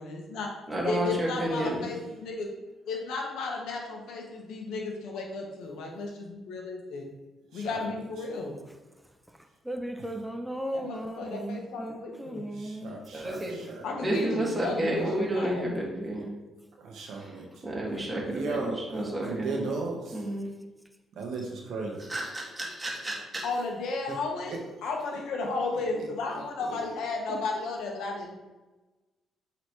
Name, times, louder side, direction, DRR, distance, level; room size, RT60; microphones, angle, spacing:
voice 1, 0.0-0.5 0.8-2.5 2.8-7.1 7.5-8.6 10.7-12.5 13.8-15.6 23.4-28.3, left 3 dB, 85° left, 1.3 m, -34 dB
voice 2, 0.7-1.8 13.1-13.6 14.0-16.3 17.2-17.3 17.6-19.7 20.1-20.5 22.1-23.4, right 1 dB, 20° right, 2.0 m, -31 dB
voice 3, 9.7-13.0 14.0-14.5, right 1 dB, 5° right, 0.7 m, -36 dB
voice 4, 12.6-13.8 16.8-17.4 18.3-20.2 21.2-22.0 26.0-26.1 26.6-26.9, right 3 dB, 75° right, 1.2 m, -36 dB
7.9 x 4.1 x 3.2 m
cardioid pair, 90°, 0 cm